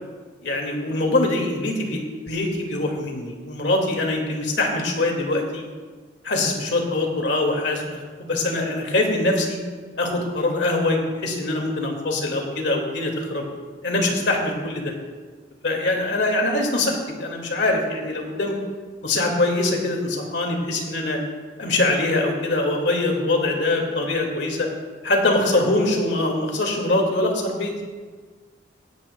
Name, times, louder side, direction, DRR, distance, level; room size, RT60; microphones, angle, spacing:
voice 1, 0.4-5.7 6.2-9.6 10.0-13.4 13.8-14.9 15.6-18.6 19.0-21.2 21.6-24.7 25.0-27.7, left 2 dB, 90° left, 1 dB, 2.0 m, -23 dB
17.0 x 10.5 x 2.2 m, 1.5 s
head